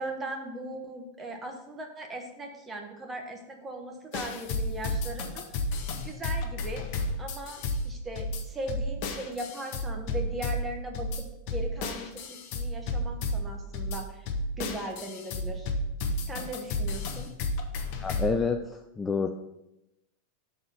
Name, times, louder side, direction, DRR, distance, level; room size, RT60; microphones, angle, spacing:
voice 1, 0.0-5.4 6.0-6.9 7.2-11.2 11.5-14.3 14.6-15.7 16.3-17.3, right 1 dB, 15° right, 3 dB, 1.1 m, -38 dB
sound 1, 4.1-18.3, left 2 dB, 55° left, 0.9 m, -32 dB
voice 2, 18.0-19.3, left 5 dB, 15° left, 5 dB, 0.4 m, -28 dB
5.8 x 4.1 x 5.4 m, 0.89 s
supercardioid pair, 125°, 0 cm